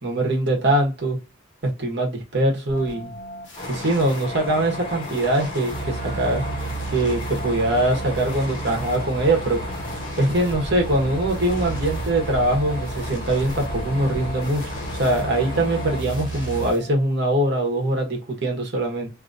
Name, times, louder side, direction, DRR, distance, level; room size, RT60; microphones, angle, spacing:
voice 1, 0.0-1.2 1.6-3.1 3.7-6.4 6.9-9.6 10.2-14.6 15.0-19.1, right 1 dB, 55° right, 1.2 m, -22 dB
sound 1, 2.7-17.3, left 1 dB, 60° left, 1.2 m, -41 dB
sound 2, 3.6-16.0, left 1 dB, 30° left, 1.0 m, -34 dB
sound 3, 5.7-16.7, right 3 dB, 20° right, 1.3 m, -33 dB
2.9 x 2.5 x 2.6 m
head